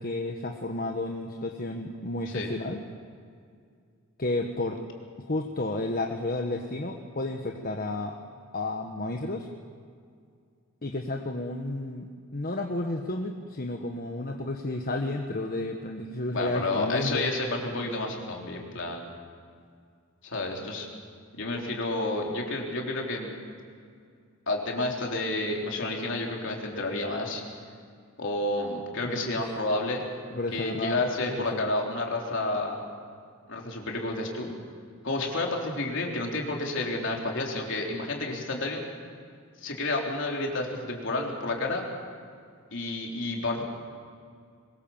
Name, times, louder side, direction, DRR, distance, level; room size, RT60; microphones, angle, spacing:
voice 1, 0.0-2.8 4.2-4.8 5.3-8.2 8.5-9.5 10.8-17.3 29.0-29.2 30.3-31.0 31.4-31.7, left 2 dB, 45° left, 3 dB, 1.3 m, -32 dB
voice 2, 16.3-19.1 20.2-20.9 21.3-23.3 24.5-27.4 28.2-30.0 30.5-32.8 33.5-34.6 35.0-38.8 39.6-41.9 42.7-43.6, left 2 dB, 60° left, 0 dB, 3.8 m, -30 dB
23.5 x 21.0 x 7.3 m, 2.2 s
head